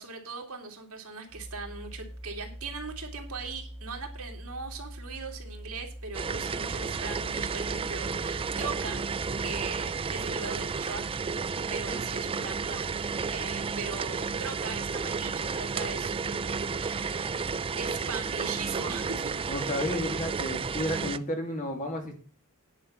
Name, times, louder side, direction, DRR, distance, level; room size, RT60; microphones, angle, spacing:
voice 1, 0.0-11.2 11.7-13.0 13.3-17.3 17.8-19.3, right 4 dB, 75° right, 2 dB, 2.6 m, -40 dB
sound 1, 1.3-10.0, equal, 15° left, 3.6 m, -43 dB
sound 2, 6.1-21.2, right 5 dB, 25° right, 0.4 m, -32 dB
voice 2, 19.5-22.1, left 1 dB, 35° left, 3 dB, 2.7 m, -32 dB
10.0 x 5.4 x 7.9 m, 0.41 s
head